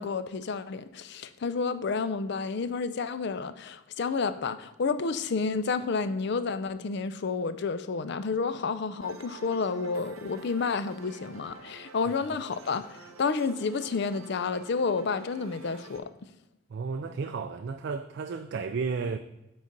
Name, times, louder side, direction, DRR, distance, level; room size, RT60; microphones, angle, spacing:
voice 1, 0.0-12.8 13.2-16.1, left 4 dB, 55° left, 0.4 m, -30 dB
sound 1, 9.0-16.0, right 3 dB, 85° right, 0.8 m, -49 dB
voice 2, 16.7-19.2, right 5 dB, 55° right, 0.3 m, -33 dB
7.7 x 4.0 x 5.2 m
head